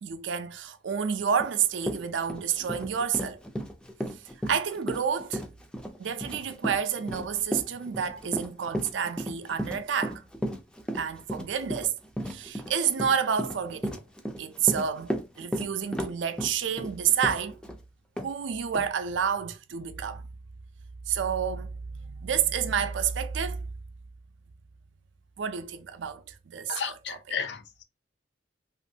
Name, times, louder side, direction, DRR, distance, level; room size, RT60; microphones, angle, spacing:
voice 1, 0.0-3.4 4.4-5.4 6.0-10.2 10.9-11.9 12.3-14.0 14.4-17.6 18.2-20.3 21.1-23.6 25.4-26.8 27.1-27.2, right 7 dB, 85° right, 0.4 m, -29 dB
Run, 1.4-1.5 1.8-17.8 18.2-18.3 18.7-18.9, equal, 5° left, 0.4 m, -34 dB
voice 2, 26.7-27.8, left 7 dB, 65° left, 0.6 m, -33 dB
3.0 x 2.5 x 2.7 m
head